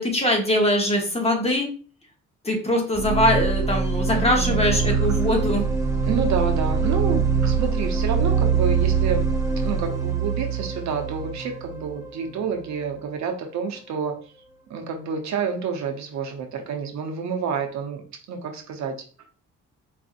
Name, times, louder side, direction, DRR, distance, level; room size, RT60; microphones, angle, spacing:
voice 1, 0.0-1.7 2.4-5.7, left 1 dB, 20° left, 1 dB, 1.0 m, -22 dB
sound 1, 2.9-12.7, right 6 dB, 10° right, 0.7 m, -23 dB
voice 2, 4.1-5.0 6.0-9.3 9.6-14.2 14.7-18.0 18.3-19.0, right 6 dB, 65° right, 3 dB, 0.8 m, -29 dB
4.1 x 2.6 x 2.5 m, 0.39 s
cardioid pair, 90°, 30 cm